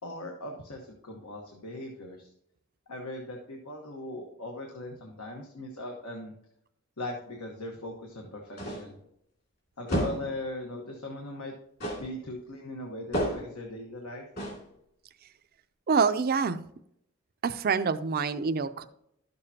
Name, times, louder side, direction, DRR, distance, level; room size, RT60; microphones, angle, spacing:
voice 1, 0.0-2.3 2.9-6.3 7.0-9.0 9.8-11.5 11.9-14.3, left 1 dB, 80° left, 1 dB, 1.3 m, -39 dB
sound 1, 8.6-9.0 9.9-10.4 11.8-12.2 13.1-13.6 14.4-14.7, equal, 45° left, 2.5 m, -31 dB
voice 2, 15.9-16.6 17.4-18.8, right 5 dB, 45° right, 10 dB, 0.4 m, -26 dB
12.5 x 6.9 x 2.8 m, 0.74 s
head